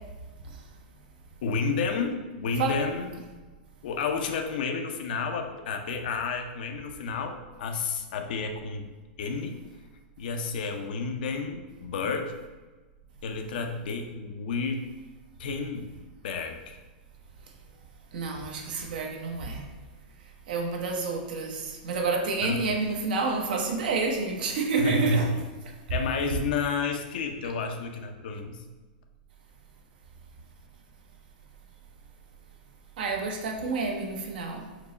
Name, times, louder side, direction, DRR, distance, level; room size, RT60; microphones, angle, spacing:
voice 1, 1.4-3.1 3.8-8.9 9.2-9.6 10.2-12.3 13.2-14.8 15.4-15.9 16.2-16.8 22.4-22.6 24.8-25.2 25.9-28.6, left 4 dB, 70° left, 5 dB, 0.5 m, -31 dB
voice 2, 18.1-19.7 20.5-25.3 33.0-34.7, right 4 dB, 70° right, 2 dB, 0.8 m, -29 dB
4.5 x 2.1 x 3.8 m, 1.3 s
hypercardioid pair, 135°, 5 cm